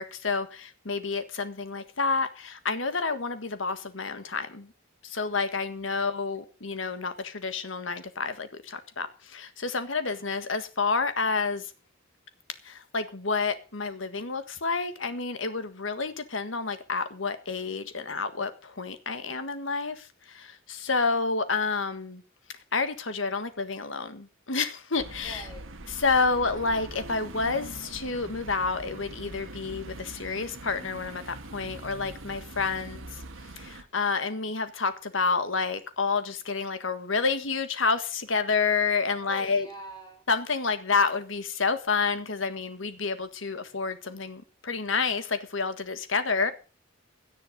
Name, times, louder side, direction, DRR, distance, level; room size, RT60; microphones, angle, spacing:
voice 1, 0.0-4.7 5.0-11.7 12.6-22.2 22.7-25.5 25.9-33.1 33.6-39.7 40.3-46.5, left 4 dB, 75° left, 1.6 m, -29 dB
sound 1, 25.0-33.8, right 2 dB, 85° right, 1.7 m, -43 dB
voice 2, 25.2-25.7 39.2-40.2 46.4-46.5, right 1 dB, 20° left, 5.7 m, -43 dB
17.0 x 10.0 x 5.2 m
head